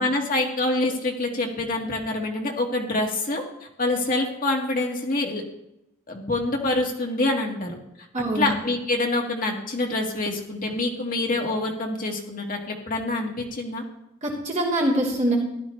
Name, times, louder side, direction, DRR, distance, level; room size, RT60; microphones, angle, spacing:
voice 1, 0.0-5.4 6.1-7.7 8.3-13.8, left 2 dB, 40° left, 1 dB, 1.8 m, -26 dB
voice 2, 8.1-8.5 14.2-15.4, right 1 dB, 35° right, -5 dB, 3.4 m, -24 dB
15.0 x 11.0 x 3.2 m, 0.84 s
head